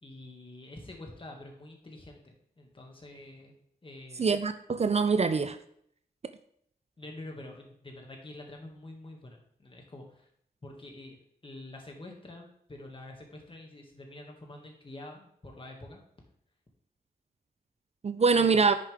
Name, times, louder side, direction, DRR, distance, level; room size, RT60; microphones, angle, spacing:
voice 1, 0.0-3.5 3.8-4.3 7.0-10.3 10.6-11.2 11.4-16.0 18.3-18.6, left 1 dB, 35° left, 1 dB, 2.0 m, -47 dB
voice 2, 4.2-5.6 18.0-18.7, right 5 dB, 45° right, 11 dB, 0.4 m, -24 dB
9.8 x 6.8 x 3.5 m, 0.68 s
wide cardioid pair, 135°, 16 cm